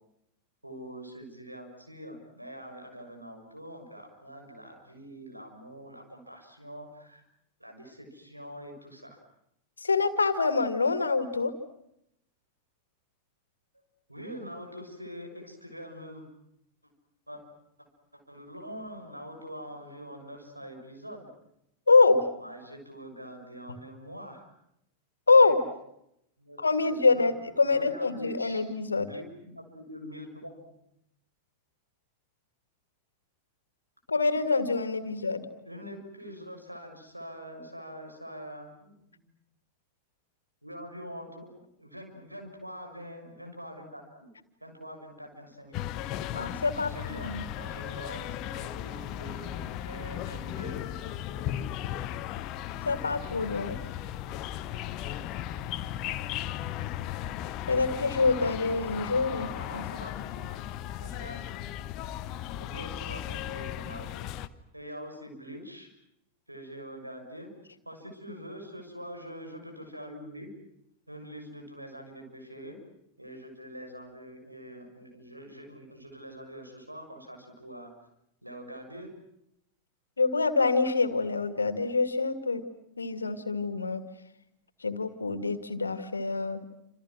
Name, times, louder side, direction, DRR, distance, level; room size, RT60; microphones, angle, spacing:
voice 1, 0.6-7.2 7.6-9.2 14.1-16.2 17.3-17.4 17.8-17.9 18.1-21.3 22.4-24.5 26.4-27.3 27.7-28.6 28.9-30.8 35.6-39.2 40.6-44.3 44.6-45.9 46.7-51.0 59.2-60.6 61.0-61.4 62.5-64.3 64.7-65.9 66.5-67.5 67.8-70.5 71.1-72.8 73.2-77.9 78.4-79.1, equal, 85° right, 3 dB, 6.6 m, -44 dB
voice 2, 9.8-11.5 21.9-22.2 25.3-25.6 26.6-29.1 34.1-35.5 46.3-47.4 52.8-53.8 57.7-59.5 59.7-59.8 80.2-82.7 83.0-84.0 84.8-86.6, left 4 dB, 75° left, 11 dB, 2.2 m, -25 dB
sound 1, 45.7-64.5, left 12 dB, 40° left, 1.2 m, -36 dB
29.0 x 27.5 x 6.3 m, 0.79 s
figure-of-eight pair, 90°, 0 cm